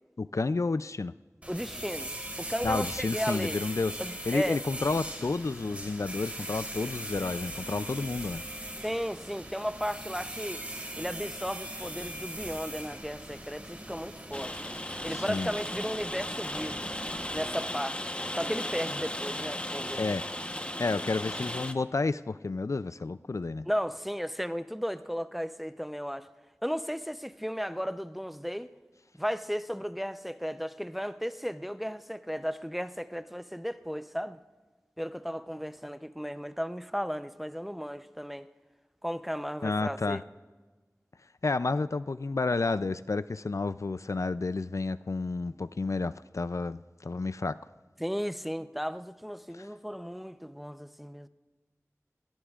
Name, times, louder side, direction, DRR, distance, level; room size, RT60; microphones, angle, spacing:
voice 1, 0.2-1.1 2.6-4.0 4.3-8.4 15.1-15.5 20.0-20.2 20.8-23.7 39.6-40.2 41.4-47.6 49.5-49.7, left 3 dB, 65° left, 0.3 m, -31 dB
sound 1, 1.4-17.5, right 1 dB, 25° right, 3.2 m, -40 dB
voice 2, 1.5-2.1 2.4-3.6 4.0-4.6 8.8-10.6 11.0-14.5 15.0-16.9 17.3-18.0 18.3-20.0 23.7-26.3 26.6-28.7 29.2-34.4 35.0-38.5 39.0-40.2 48.0-51.3, equal, ahead, 0.6 m, -35 dB
Rain, 14.3-21.7, left 1 dB, 20° left, 1.0 m, -36 dB
21.5 x 18.5 x 2.4 m
wide cardioid pair, 45°, 6 cm